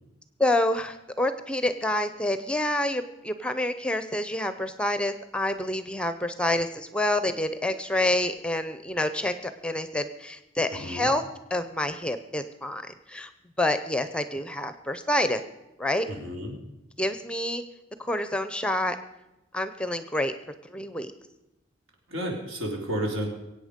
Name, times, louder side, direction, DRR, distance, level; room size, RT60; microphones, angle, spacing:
voice 1, 0.4-11.2 11.5-12.8 13.1-13.3 13.6-15.4 15.8-16.1 17.0-17.6 18.0-19.0 19.5-20.3 20.7-21.1, left 1 dB, 5° left, 11 dB, 0.6 m, -27 dB
voice 2, 10.7-11.1 16.1-16.6 22.1-23.3, equal, 85° right, 0 dB, 3.9 m, -32 dB
23.0 x 8.7 x 5.2 m, 0.96 s
head